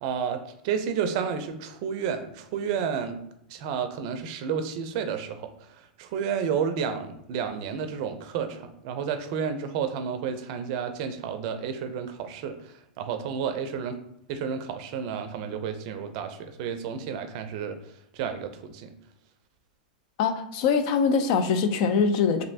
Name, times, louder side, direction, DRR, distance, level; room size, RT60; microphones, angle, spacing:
voice 1, 0.0-3.2 3.5-5.5 6.0-12.5 13.0-14.0 14.3-17.8 18.1-18.9, right 7 dB, 50° right, 8 dB, 0.4 m, -31 dB
voice 2, 20.2-22.5, left 5 dB, 55° left, 8 dB, 0.4 m, -23 dB
3.1 x 2.6 x 2.7 m, 0.76 s
hypercardioid pair, 115°, 5 cm